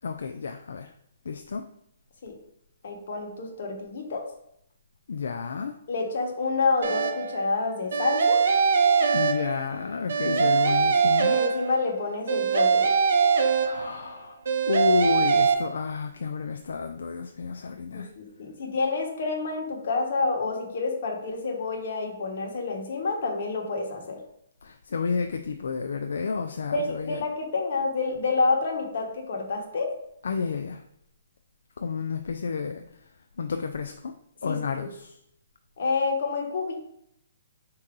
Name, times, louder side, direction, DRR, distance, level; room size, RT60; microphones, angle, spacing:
voice 1, 0.0-0.9 1.2-1.7 5.1-5.8 9.1-11.4 13.6-14.4 14.7-18.1 24.6-27.2 30.2-30.8 31.8-33.1 33.4-34.2 34.4-35.2, left 5 dB, 75° left, 6 dB, 0.3 m, -31 dB
voice 2, 2.8-4.2 5.9-8.4 10.2-10.6 11.3-12.9 17.9-24.2 26.7-29.9 34.4-34.6 35.8-36.7, left 3 dB, 55° left, 1 dB, 1.2 m, -28 dB
sound 1, 6.8-7.4 7.9-9.8 10.1-11.9 12.3-14.1 14.4-15.5, right 5 dB, 65° right, 0.6 m, -22 dB
4.7 x 2.8 x 3.7 m, 0.74 s
hypercardioid pair, 155°, 0 cm